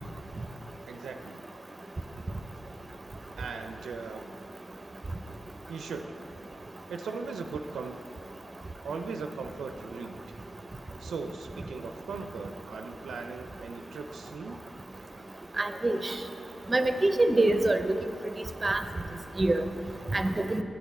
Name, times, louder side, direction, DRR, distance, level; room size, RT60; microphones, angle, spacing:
voice 1, 0.9-1.4 3.3-4.3 5.7-6.0 6.9-8.0 8.8-10.2 11.0-14.6, right 4 dB, 80° right, 6 dB, 0.4 m, -38 dB
voice 2, 15.6-16.1 16.7-17.9 18.6-18.8 19.4-19.6 20.1-20.6, right 2 dB, 30° right, 8 dB, 0.6 m, -25 dB
8.7 x 8.1 x 4.1 m, 2.7 s
cardioid pair, 50°, 0 cm